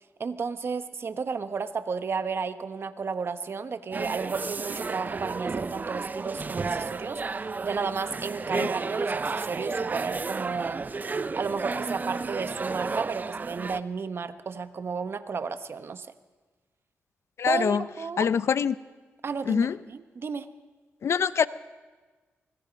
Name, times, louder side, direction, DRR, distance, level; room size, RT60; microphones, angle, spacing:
voice 1, 0.2-7.2 7.6-10.9 11.3-16.1 17.5-18.3 19.2-20.5, right 5 dB, 55° right, 11 dB, 1.2 m, -33 dB
sound 1, 3.9-13.8, right 4 dB, 35° right, 0.7 m, -32 dB
voice 2, 17.4-17.8 18.2-18.8 19.5-19.8 21.0-21.5, left 7 dB, 70° left, 16 dB, 0.7 m, -24 dB
24.0 x 23.0 x 5.3 m, 1.4 s
cardioid pair, 65°, 5 cm